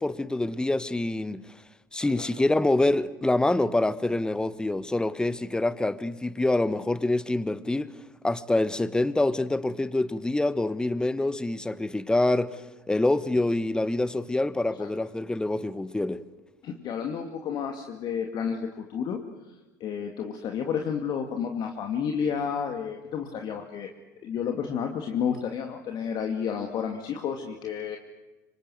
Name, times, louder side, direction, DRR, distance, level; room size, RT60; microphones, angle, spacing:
voice 1, 0.0-1.6 1.9-7.9 8.2-12.6 12.9-16.2, left 2 dB, 10° left, 1.2 m, -26 dB
voice 2, 16.6-19.2 19.8-23.9 24.2-28.0, left 7 dB, 50° left, 2.5 m, -31 dB
26.0 x 25.0 x 8.0 m
hypercardioid pair, 80°, 9 cm